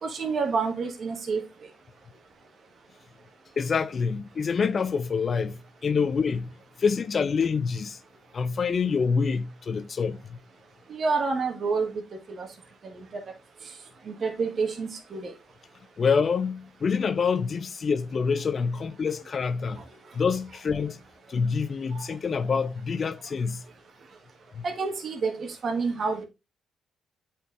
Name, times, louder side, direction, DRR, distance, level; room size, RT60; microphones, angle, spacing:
voice 1, 0.0-1.4 10.9-11.9 12.4-12.5 14.1-15.3 24.6-26.2, right 4 dB, 50° right, 1.6 m, -28 dB
voice 2, 3.6-6.5 6.8-8.0 8.3-10.4 16.0-19.8 20.1-21.0 21.3-23.6 24.5-24.6, left 5 dB, 50° left, 0.6 m, -26 dB
8.0 x 4.6 x 3.5 m
supercardioid pair, 55°, 0 cm